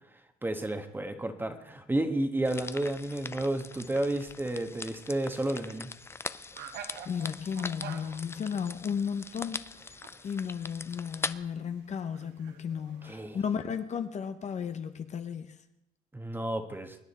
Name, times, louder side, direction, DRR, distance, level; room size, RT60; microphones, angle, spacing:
voice 1, 0.4-5.9 13.0-13.4 16.1-17.0, right 1 dB, 10° right, 1.4 m, -31 dB
sound 1, 2.4-11.3, left 3 dB, 15° left, 0.4 m, -41 dB
sound 2, 5.3-13.5, right 8 dB, 85° right, 1.3 m, -50 dB
voice 2, 7.0-9.7 10.2-15.6, left 7 dB, 45° left, 1.0 m, -34 dB
24.0 x 9.9 x 4.3 m
cardioid pair, 110°, 17 cm